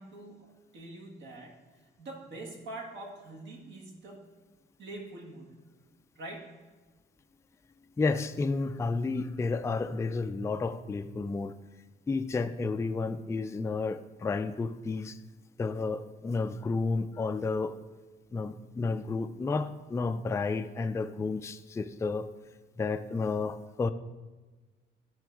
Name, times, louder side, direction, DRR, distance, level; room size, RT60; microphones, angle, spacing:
voice 1, 0.0-4.3 4.8-5.6 6.1-6.7, right 2 dB, 65° right, 0 dB, 1.7 m, -45 dB
voice 2, 8.0-11.5 12.1-15.2 15.6-17.8 18.3-22.3 22.8-23.9, left 4 dB, 15° left, 9 dB, 0.3 m, -31 dB
9.6 x 3.9 x 4.6 m, 1.3 s
cardioid pair, 90°, 20 cm